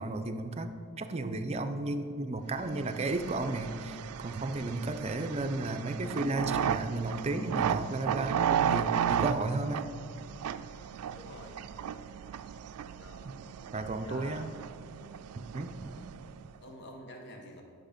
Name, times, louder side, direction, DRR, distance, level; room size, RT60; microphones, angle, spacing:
voice 1, 0.0-9.9 13.2-13.3 13.7-14.5 15.4-16.0, right 2 dB, 30° right, 8 dB, 0.5 m, -34 dB
sound 1, 2.7-16.6, right 8 dB, 85° right, 0.3 m, -34 dB
voice 2, 11.1-11.5 13.0-13.3 13.9-14.5 16.6-17.6, left 1 dB, 50° left, 2 dB, 1.1 m, -48 dB
10.5 x 6.2 x 5.1 m, 2.2 s
head